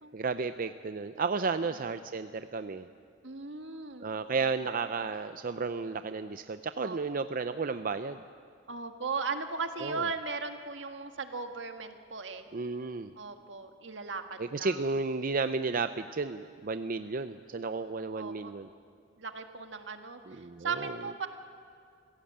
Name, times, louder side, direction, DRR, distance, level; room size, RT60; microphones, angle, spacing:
voice 1, 0.1-2.9 4.0-8.2 9.8-10.1 12.5-13.1 14.4-18.7 20.3-20.9, right 4 dB, 50° right, 10 dB, 0.6 m, -33 dB
voice 2, 3.2-4.1 6.8-7.0 8.7-12.4 13.2-14.8 18.1-18.6 19.2-20.2 20.6-21.3, right 4 dB, 80° right, 6 dB, 1.7 m, -37 dB
26.5 x 16.5 x 8.8 m, 2.2 s
head